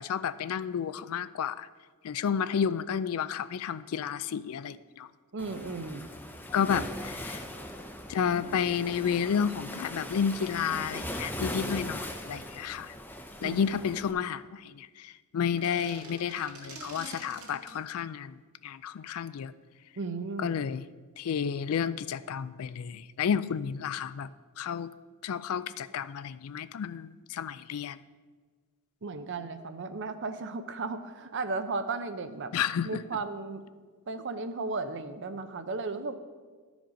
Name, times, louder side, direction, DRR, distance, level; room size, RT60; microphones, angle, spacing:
voice 1, 0.0-1.7 2.0-5.1 6.5-7.4 8.1-12.9 13.4-18.3 18.6-19.5 20.4-20.8 21.2-24.3 24.6-24.9 25.2-28.0 32.5-32.9, left 7 dB, 75° left, 15 dB, 0.4 m, -31 dB
voice 2, 5.3-6.1 13.4-13.6 20.0-20.5 29.0-32.5 32.8-33.6 34.1-36.2, right 3 dB, 55° right, 10 dB, 0.6 m, -35 dB
Waves surf, 5.4-14.1, equal, 10° left, 0.7 m, -39 dB
sound 1, 15.4-17.8, right 2 dB, 70° right, 1.8 m, -46 dB
12.5 x 5.0 x 5.1 m, 1.5 s
head